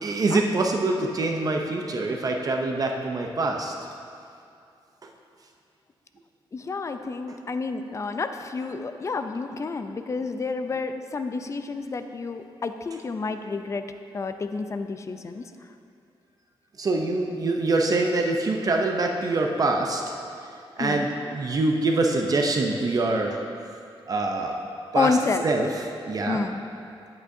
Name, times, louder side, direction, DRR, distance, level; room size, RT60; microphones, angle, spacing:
voice 1, 0.0-3.7 16.8-20.0 20.8-23.4 24.1-24.5 24.9-25.2 25.4-25.7 26.1-26.4, right 2 dB, 40° right, 2 dB, 0.6 m, -24 dB
voice 2, 6.5-13.8 14.1-15.4 20.8-21.1 24.9-25.4 26.3-26.6, left 4 dB, 35° left, 8 dB, 0.5 m, -29 dB
10.5 x 8.7 x 2.7 m, 2.5 s
cardioid pair, 110°, 9 cm